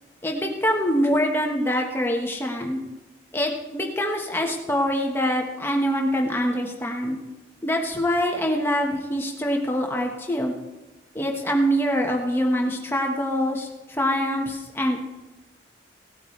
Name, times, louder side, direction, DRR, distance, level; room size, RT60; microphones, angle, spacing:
voice 1, 0.2-2.8 3.3-7.2 7.6-10.5 11.1-15.0, equal, 10° left, 1 dB, 1.3 m, -24 dB
17.5 x 9.1 x 3.2 m, 1.1 s
head